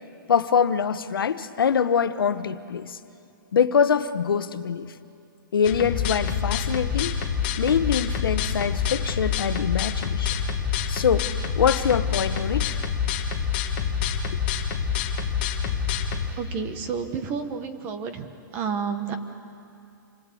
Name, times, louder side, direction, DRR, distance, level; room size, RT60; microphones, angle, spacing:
voice 1, 0.3-3.0 3.5-4.9 5.5-7.1 7.6-10.4 10.9-12.8, left 7 dB, 90° left, 11 dB, 1.2 m, -24 dB
sound 1, 5.6-16.3, left 7 dB, 25° left, 1.4 m, -27 dB
voice 2, 16.4-18.3 18.5-19.1, right 6 dB, 15° right, 8 dB, 1.1 m, -30 dB
27.5 x 20.0 x 8.5 m, 2.5 s
hypercardioid pair, 175°, 11 cm